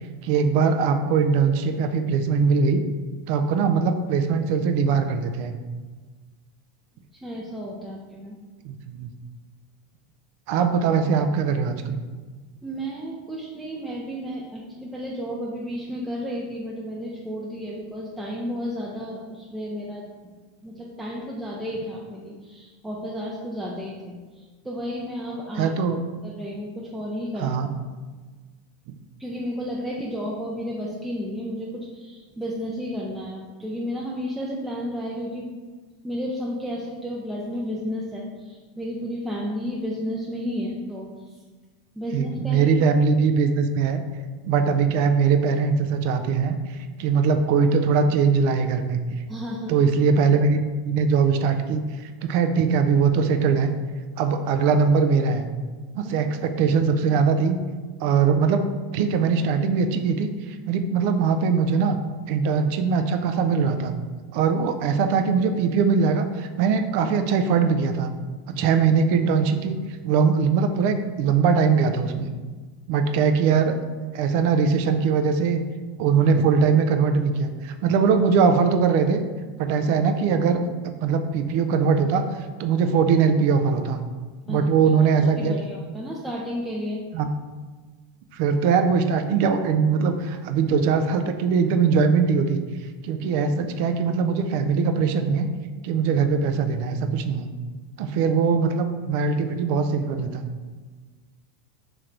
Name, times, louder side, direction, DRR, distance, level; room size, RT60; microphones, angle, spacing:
voice 1, 0.2-2.8 3.3-5.5 8.6-9.1 10.5-12.0 25.6-26.0 27.4-27.7 42.1-44.0 44.4-49.0 49.7-53.7 54.2-55.5 55.9-57.6 58.0-58.6 58.9-62.0 62.3-63.9 64.3-68.1 68.5-69.8 70.0-72.3 72.9-73.7 74.1-75.6 76.0-79.2 79.6-80.6 81.0-82.2 82.6-84.0 84.5-85.5 87.1-87.3 88.3-92.6 93.0-95.5 95.8-97.5 98.0-100.4, right 5 dB, 60° right, 7 dB, 0.4 m, -21 dB
voice 2, 7.1-8.4 12.6-20.1 20.6-25.7 26.2-27.6 29.2-35.5 36.0-41.4 42.0-42.7 49.3-49.8 56.0-56.1 84.5-84.7 85.1-87.0, equal, 10° right, -4 dB, 0.5 m, -32 dB
3.2 x 3.1 x 3.8 m, 1.4 s
hypercardioid pair, 100°, 0 cm